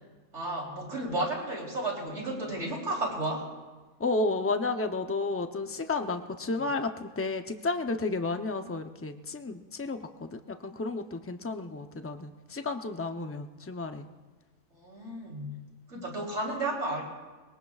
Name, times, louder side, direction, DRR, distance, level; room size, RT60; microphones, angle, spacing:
voice 1, 0.3-3.5 14.7-15.5 15.9-17.0, right 2 dB, 55° right, -2 dB, 3.8 m, -33 dB
voice 2, 4.0-14.1 15.9-16.0, left 3 dB, 20° left, 6 dB, 0.3 m, -32 dB
23.0 x 21.0 x 2.4 m, 1.3 s
omnidirectional pair, 1.5 m